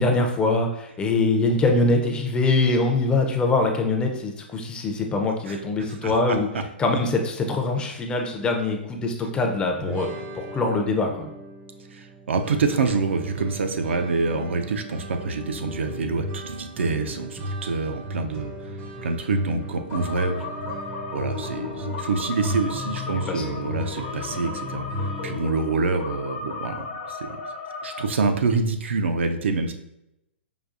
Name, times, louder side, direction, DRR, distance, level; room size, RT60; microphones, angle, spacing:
voice 1, 0.0-6.5 6.8-10.1 10.3-11.3 23.1-23.4, left 3 dB, 15° left, 3 dB, 0.4 m, -23 dB
voice 2, 5.5-6.6 11.9-18.5 19.0-20.5 21.1-24.8 25.2-27.4 27.8-29.7, right 4 dB, 80° right, 6 dB, 0.4 m, -26 dB
sound 1, 9.8-25.4, equal, 35° right, 0.5 m, -35 dB
sound 2, 19.9-28.1, left 4 dB, 60° left, 0.8 m, -35 dB
5.0 x 2.3 x 2.5 m, 0.85 s
hypercardioid pair, 130°, 6 cm